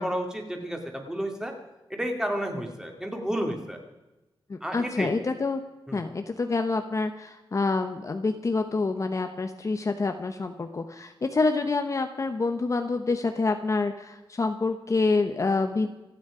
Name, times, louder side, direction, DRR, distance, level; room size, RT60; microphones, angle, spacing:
voice 1, 0.0-1.5 1.9-3.8 4.6-5.1 5.9-6.0, equal, 5° right, 3 dB, 2.4 m, -31 dB
voice 2, 4.5-5.6 5.9-15.9, left 3 dB, 35° left, 6 dB, 1.0 m, -27 dB
27.5 x 9.5 x 5.0 m, 1.0 s
wide cardioid pair, 170°, 9 cm